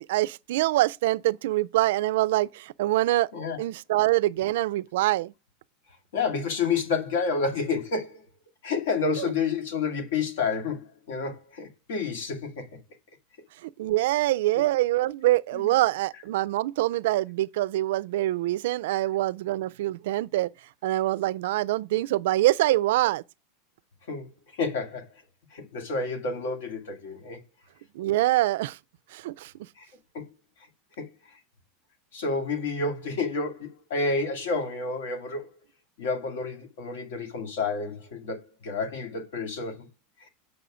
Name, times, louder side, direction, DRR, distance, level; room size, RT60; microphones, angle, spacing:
voice 1, 0.1-3.3 3.6-5.3 9.2-9.3 13.6-20.5 20.8-23.2 27.9-28.8 29.1-29.5, right 16 dB, 70° right, 0.3 m, -25 dB
voice 2, 6.1-8.2 8.6-12.8 14.5-14.6 15.5-15.7 24.1-25.1 25.5-27.4 29.8-29.9 30.1-30.3 31.0-31.4 32.1-35.5 36.0-39.9 40.2-40.3, left 4 dB, 80° left, 2.1 m, -30 dB
7.9 x 5.5 x 5.0 m
supercardioid pair, 175°, 0 cm